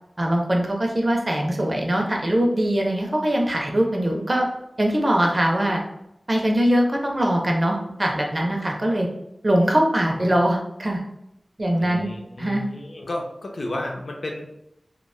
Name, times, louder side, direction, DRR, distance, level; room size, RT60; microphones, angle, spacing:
voice 1, 0.2-4.5 4.8-5.8 6.3-9.1 9.4-11.0 11.6-12.1 12.4-12.6, right 1 dB, 45° right, 0 dB, 0.5 m, -22 dB
voice 2, 11.7-14.5, left 1 dB, 85° left, 0 dB, 0.4 m, -32 dB
2.8 x 2.1 x 2.2 m, 0.81 s
wide cardioid pair, 45°, 0 cm